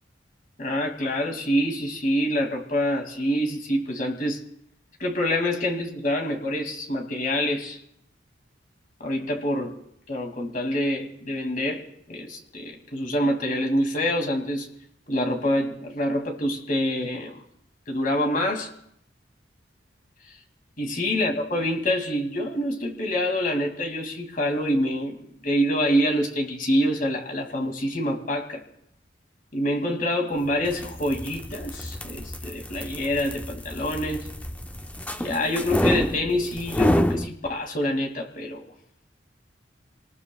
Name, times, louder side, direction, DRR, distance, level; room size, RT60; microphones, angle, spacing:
voice 1, 0.6-4.4 5.0-7.8 9.0-9.8 10.1-14.7 15.1-17.4 17.9-18.7 20.8-25.2 25.4-28.6 29.5-34.3 35.2-38.6, equal, 45° left, 2 dB, 2.5 m, -26 dB
sound 1, 30.5-37.3, left 1 dB, 10° left, 0.5 m, -28 dB
28.0 x 19.5 x 2.3 m, 0.71 s
head